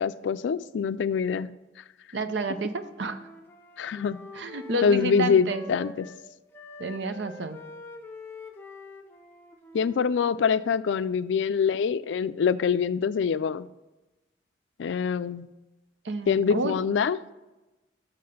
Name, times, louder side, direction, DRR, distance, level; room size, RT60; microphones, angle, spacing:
voice 1, 0.0-1.5 3.8-4.2 4.8-6.1 9.7-13.7 14.8-15.5 16.3-17.2, left 6 dB, 85° left, 15 dB, 0.3 m, -25 dB
voice 2, 2.1-3.2 4.3-5.6 6.8-7.6 16.0-16.8, right 2 dB, 80° right, 9 dB, 0.6 m, -30 dB
Wind instrument woodwind instrument, 2.5-6.2 6.5-10.6, left 2 dB, 10° left, 0.7 m, -46 dB
6.7 x 6.3 x 5.4 m, 1.0 s
head